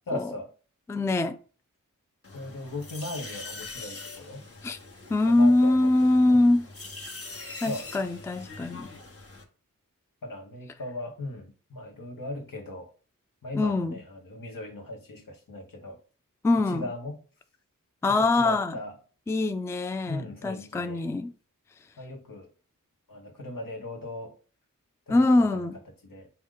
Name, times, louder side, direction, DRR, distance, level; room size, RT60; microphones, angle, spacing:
voice 1, 0.1-0.5 2.3-4.5 5.2-6.4 7.6-7.9 10.2-12.9 13.4-16.0 16.5-17.2 18.1-19.0 20.1-21.1 22.0-22.5 23.1-24.3 25.1-25.7 26.0-26.3, left 1 dB, 80° left, 1.0 m, -38 dB
voice 2, 0.9-1.4 4.6-4.8 5.1-6.7 7.6-8.9 13.5-14.0 16.4-16.9 18.0-18.7 19.3-21.3 25.1-25.8, left 2 dB, 10° left, 0.3 m, -23 dB
sound 1, 2.2-9.4, left 3 dB, 45° left, 1.0 m, -43 dB
4.8 x 2.2 x 3.7 m
wide cardioid pair, 50°, 33 cm